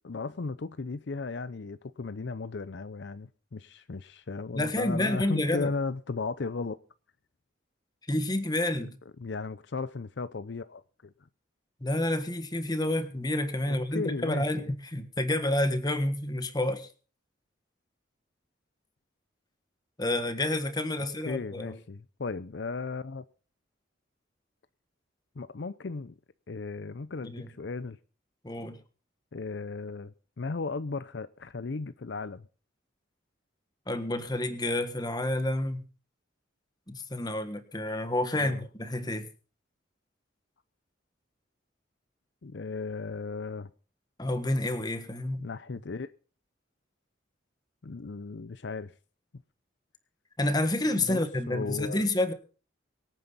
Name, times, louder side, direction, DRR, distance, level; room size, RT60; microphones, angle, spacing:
voice 1, 0.0-6.8 9.2-11.1 13.7-14.7 21.0-23.2 25.4-26.1 26.5-28.0 29.3-32.5 38.3-38.6 42.4-43.7 45.4-46.1 47.8-48.9 50.9-51.2 51.5-52.0, left 4 dB, 60° left, 0.6 m, -36 dB
voice 2, 4.5-5.7 8.1-9.0 11.8-16.9 20.0-21.8 27.2-27.5 28.4-28.8 33.9-35.8 36.9-39.3 44.2-45.4 50.4-52.3, left 1 dB, 20° left, 1.4 m, -29 dB
24.0 x 9.2 x 4.1 m
head